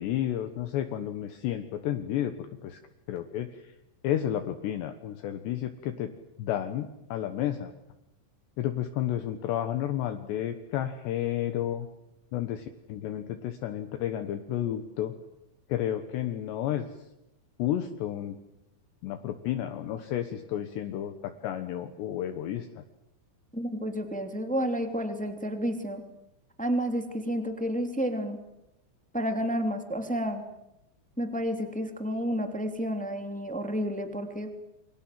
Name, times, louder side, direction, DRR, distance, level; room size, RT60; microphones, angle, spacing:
voice 1, 0.0-2.8 3.1-3.7 4.0-6.1 6.4-7.7 8.6-11.9 12.3-15.1 15.7-16.9 17.6-18.4 19.0-22.8, left 11 dB, 70° left, 8 dB, 3.3 m, -31 dB
voice 2, 23.5-26.0 26.6-28.4 29.1-30.4 31.2-34.5, equal, 5° left, 6 dB, 1.8 m, -30 dB
29.0 x 25.0 x 7.8 m, 0.86 s
omnidirectional pair, 5.5 m